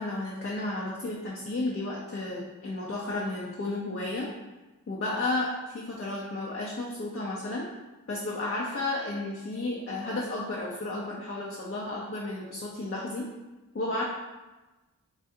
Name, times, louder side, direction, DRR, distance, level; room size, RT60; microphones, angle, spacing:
voice 1, 0.0-4.3 4.9-7.7 8.1-13.3 13.7-14.0, left 2 dB, 40° left, -4 dB, 0.7 m, -32 dB
4.7 x 2.3 x 2.7 m, 1.1 s
cardioid pair, 55°, 36 cm